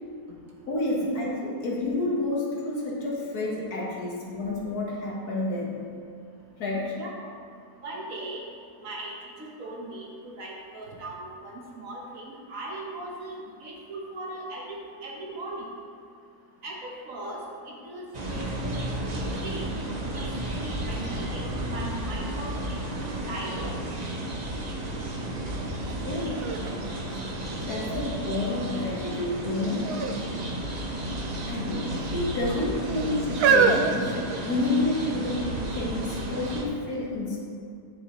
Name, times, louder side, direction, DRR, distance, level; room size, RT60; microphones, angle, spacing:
voice 1, 0.7-5.8 6.6-7.0 26.0-26.4 27.7-30.1 31.5-37.4, left 2 dB, 70° left, -3 dB, 1.9 m, -29 dB
voice 2, 6.9-7.3 7.8-8.5 8.8-15.7 16.6-18.8 19.1-19.6 20.1-23.8 32.3-32.6, right 2 dB, 55° right, -2 dB, 1.5 m, -39 dB
sound 1, 18.1-36.6, right 1 dB, 35° right, 0.7 m, -33 dB
sound 2, 25.8-25.9 26.4-27.9 28.5-29.0 29.8-30.2 30.5-30.6 31.5-32.2 32.9-34.9 35.7-35.8, right 5 dB, 75° right, 1.1 m, -26 dB
9.7 x 6.9 x 3.1 m, 2.5 s
omnidirectional pair, 1.7 m